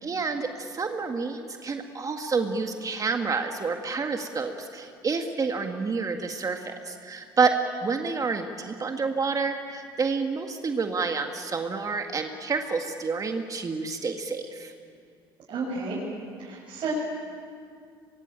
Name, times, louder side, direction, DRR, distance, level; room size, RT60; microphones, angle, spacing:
voice 1, 0.0-14.7, right 4 dB, 30° right, 5 dB, 1.8 m, -29 dB
voice 2, 15.5-16.0 16.4-16.9, right 4 dB, 50° right, -6 dB, 7.1 m, -31 dB
23.5 x 23.0 x 8.9 m, 2.3 s
hypercardioid pair, 70°, 11 cm